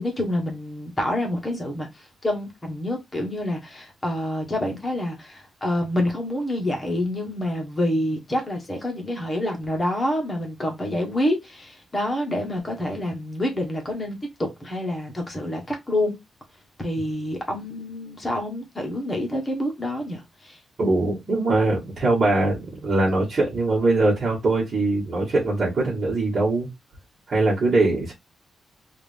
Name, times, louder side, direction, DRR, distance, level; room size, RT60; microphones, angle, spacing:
voice 1, 0.0-16.2 16.8-20.6, left 1 dB, 15° left, 1.1 m, -27 dB
voice 2, 20.8-26.7 27.3-28.1, right 2 dB, 35° right, 1.7 m, -22 dB
3.6 x 2.6 x 3.3 m
wide cardioid pair, 175°, 0 cm